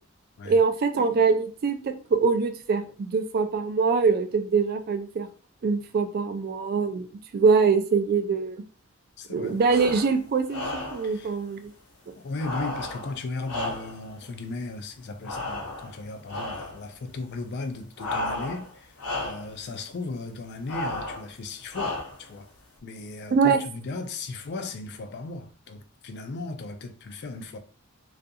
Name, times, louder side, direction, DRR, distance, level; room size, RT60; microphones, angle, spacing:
voice 1, 0.4-5.3 5.6-7.1 7.3-8.6 9.3-11.7 23.3-23.6, right 5 dB, 45° right, 0.3 m, -23 dB
voice 2, 9.2-9.6 11.0-11.3 12.2-22.5 22.8-27.6, left 3 dB, 50° left, 0.4 m, -36 dB
sound 1, 9.6-10.1 10.5-11.1 12.4-14.1 15.2-16.0 16.3-16.8 18.0-18.7 19.0-19.5 20.7-21.3 21.7-22.3, left 2 dB, 85° left, 0.9 m, -33 dB
2.4 x 2.3 x 2.6 m
head